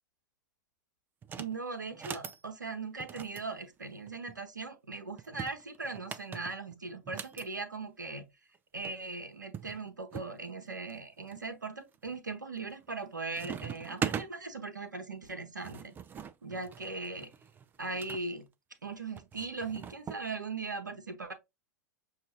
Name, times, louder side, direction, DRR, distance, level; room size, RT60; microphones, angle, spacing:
sound 1, 1.2-1.6 1.9-2.4 3.0-4.4 5.2-7.5 8.6-8.7 8.8-9.0 9.5-10.3 10.9-11.4 11.9-12.3 12.6-13.1 13.3-14.3 15.3-18.2 19.2-20.2, right 7 dB, 20° right, 0.4 m, -41 dB
voice 1, 1.4-8.3 8.7-15.9 16.4-17.3 17.8-18.5 18.8-21.3, right 3 dB, 80° right, 0.8 m, -39 dB
6.4 x 2.4 x 2.8 m
figure-of-eight pair, 95°, 10 cm